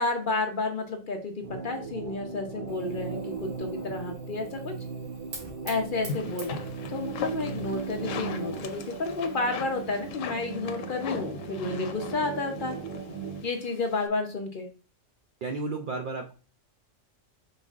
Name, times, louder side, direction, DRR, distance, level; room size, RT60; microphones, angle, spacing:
voice 1, 0.0-4.7 5.6-6.6 6.9-12.8 13.4-14.7, left 3 dB, 50° left, 5 dB, 0.7 m, -31 dB
sound 1, 1.4-13.4, right 5 dB, 40° right, 1.2 m, -37 dB
Fire, 2.7-10.1, right 2 dB, 80° right, 1.9 m, -49 dB
sound 2, 6.0-14.1, left 7 dB, 90° left, 1.0 m, -40 dB
voice 2, 6.2-6.7 15.4-16.3, right 3 dB, 60° right, 3 dB, 0.5 m, -34 dB
5.4 x 3.9 x 2.4 m, 0.35 s
omnidirectional pair, 1.3 m